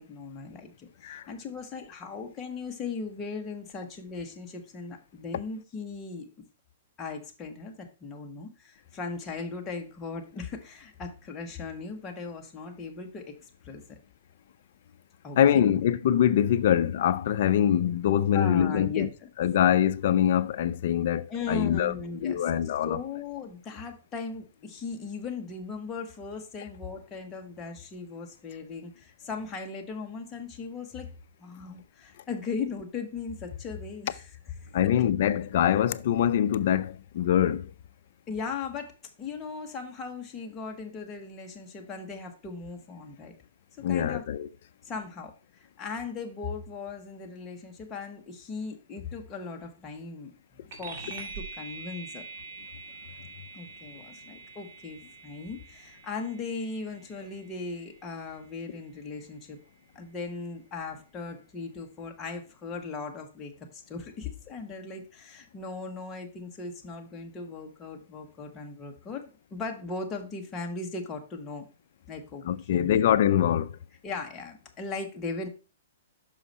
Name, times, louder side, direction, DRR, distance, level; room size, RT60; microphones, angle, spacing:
voice 1, 0.0-6.4 7.0-14.0 15.2-15.8 18.3-19.3 21.3-22.5 22.8-31.1 31.4-34.2 34.6-34.7 38.3-43.3 43.9-44.2 44.9-50.3 50.8-52.2 53.5-59.6 59.9-71.6 72.1-72.4 72.7-73.1 74.0-75.5, left 4 dB, 20° left, 1.1 m, -38 dB
voice 2, 15.4-19.1 19.4-21.9 22.2-23.0 34.7-37.7 43.8-44.5 72.4-73.7, left 10 dB, 55° left, 0.4 m, -24 dB
sound 1, 50.7-60.5, right 4 dB, 40° right, 2.1 m, -45 dB
6.2 x 4.8 x 4.1 m
hypercardioid pair, 150°, 0 cm